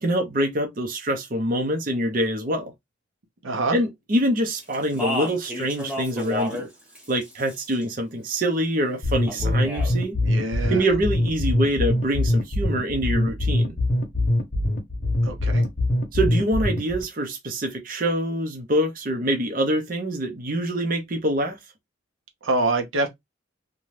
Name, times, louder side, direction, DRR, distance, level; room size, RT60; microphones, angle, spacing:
voice 1, 0.0-2.7 3.7-6.7 7.1-10.2 10.7-13.8 16.1-21.6, right 1 dB, 45° right, 0.6 m, -25 dB
voice 2, 3.4-3.8 10.2-10.9 15.2-15.6 22.4-23.1, right 2 dB, 80° right, 0.7 m, -25 dB
Speech, 4.7-6.7 7.0-7.8 9.3-9.9, left 1 dB, 5° right, 1.0 m, -31 dB
sound 1, 9.0-17.0, left 1 dB, 45° left, 0.7 m, -23 dB
2.6 x 2.2 x 3.1 m
head